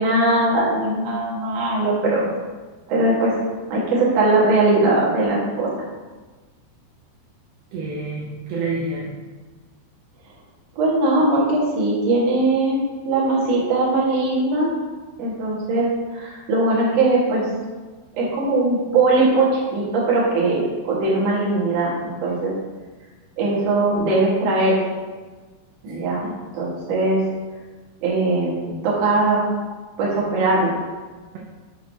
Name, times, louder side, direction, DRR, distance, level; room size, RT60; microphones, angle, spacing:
voice 1, 0.0-2.3 2.9-3.4 3.7-5.7 10.7-12.8 13.0-14.7 15.2-17.5 18.2-22.5 23.4-24.8 25.8-26.3 26.6-27.2 28.0-29.4 30.0-30.7, right 2 dB, 65° right, -6 dB, 1.6 m, -20 dB
voice 2, 7.7-9.1 25.9-26.3, right 3 dB, 85° right, -3 dB, 2.2 m, -29 dB
6.3 x 6.2 x 2.7 m, 1.3 s
omnidirectional pair, 5.3 m